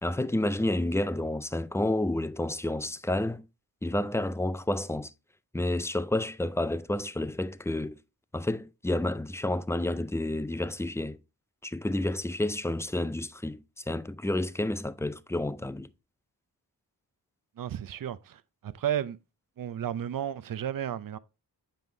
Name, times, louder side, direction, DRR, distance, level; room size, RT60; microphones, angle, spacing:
voice 1, 0.0-3.4 3.8-5.1 5.5-8.0 8.3-11.2 11.6-15.9, left 1 dB, 5° left, 0.3 m, -30 dB
voice 2, 17.6-19.2 19.6-21.2, right 10 dB, 55° right, 0.6 m, -33 dB
7.7 x 5.4 x 3.2 m
cardioid pair, 60°, 41 cm